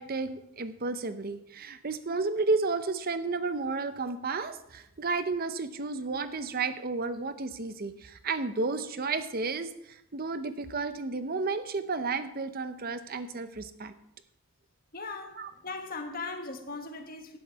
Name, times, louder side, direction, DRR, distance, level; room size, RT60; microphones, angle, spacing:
voice 1, 0.0-13.9 15.4-15.5, right 3 dB, 40° right, 11 dB, 0.7 m, -32 dB
voice 2, 14.9-17.4, left 3 dB, 40° left, 5 dB, 1.5 m, -39 dB
12.0 x 10.5 x 4.6 m, 0.79 s
head